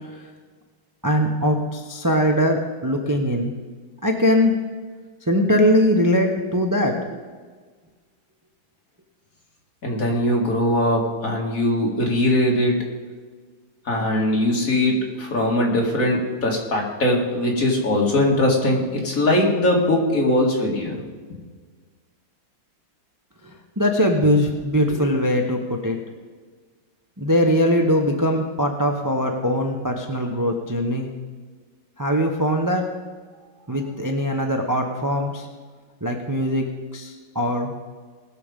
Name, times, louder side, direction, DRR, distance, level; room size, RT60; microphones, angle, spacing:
voice 1, 1.0-3.5 4.0-4.5 5.3-7.2 23.8-26.0 27.2-31.1 32.0-32.8 33.7-35.5 36.0-36.7 36.9-37.7, equal, 20° right, 2 dB, 0.5 m, -21 dB
voice 2, 9.8-12.7 13.9-21.0, left 1 dB, 45° left, -1 dB, 2.6 m, -21 dB
20.0 x 6.8 x 5.2 m, 1.5 s
omnidirectional pair, 2.1 m